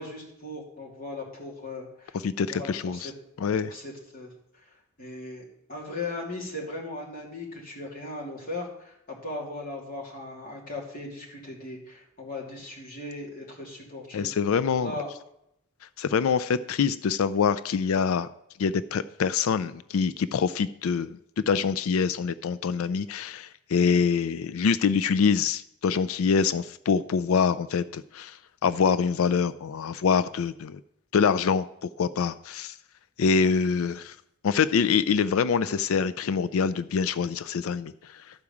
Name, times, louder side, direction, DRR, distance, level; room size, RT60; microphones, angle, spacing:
voice 1, 0.0-3.1 3.6-5.4 5.7-14.3 14.8-15.1 26.4-26.6, left 2 dB, 40° left, -3 dB, 2.9 m, -38 dB
voice 2, 2.2-3.1 3.4-3.7 14.1-14.9 16.0-18.3 18.6-21.2 21.5-28.4 28.6-30.8 31.1-31.7 32.0-32.7 33.2-34.1 34.4-38.1, left 6 dB, 75° left, 15 dB, 0.4 m, -25 dB
12.0 x 4.9 x 7.1 m, 0.78 s
head